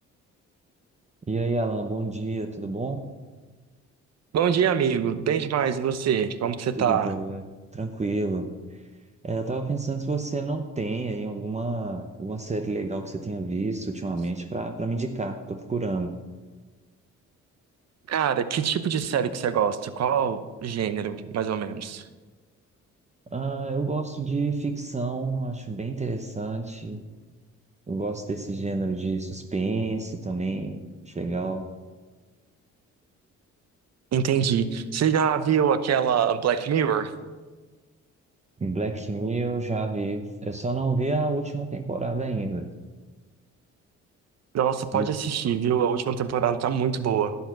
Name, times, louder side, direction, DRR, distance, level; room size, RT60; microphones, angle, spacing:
voice 1, 1.3-3.0 6.8-7.4 7.7-8.8 9.2-16.1 23.3-27.0 27.9-31.7 38.6-42.7 44.9-45.1, right 3 dB, 25° right, 6 dB, 0.8 m, -29 dB
voice 2, 4.3-7.2 18.1-22.0 34.1-37.1 44.5-47.4, right 8 dB, 60° right, 12 dB, 0.9 m, -24 dB
11.5 x 8.2 x 6.1 m, 1.3 s
cardioid pair, 90°, 30 cm